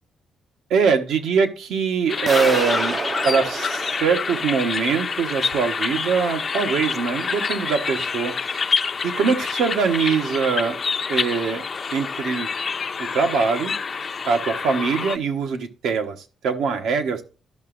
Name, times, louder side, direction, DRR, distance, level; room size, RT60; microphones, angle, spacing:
voice 1, 0.7-8.3 9.0-10.8 11.1-11.6 11.9-12.5 13.0-13.7 14.2-16.2 16.4-17.2, right 5 dB, 80° right, 6 dB, 1.2 m, -22 dB
sound 1, 2.1-15.2, left 5 dB, 40° left, 0.6 m, -27 dB
sound 2, 2.3-5.1, right 4 dB, 40° right, 0.5 m, -30 dB
13.0 x 5.9 x 2.5 m, 0.35 s
cardioid pair, 90°, 0 cm